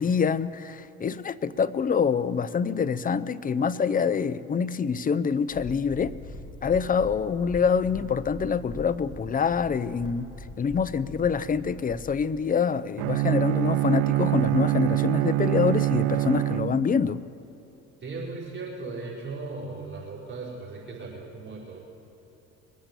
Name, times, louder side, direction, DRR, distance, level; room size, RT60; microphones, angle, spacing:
voice 1, 0.0-6.1 6.6-10.3 10.6-17.2, left 6 dB, 25° left, 0.5 m, -26 dB
sound 1, 5.5-12.2, left 2 dB, 55° left, 3.0 m, -42 dB
Bowed string instrument, 13.0-17.2, right 16 dB, 70° right, 0.5 m, -25 dB
voice 2, 18.0-21.8, right 3 dB, 30° right, 4.7 m, -37 dB
22.0 x 8.8 x 6.8 m
supercardioid pair, 75°, 36 cm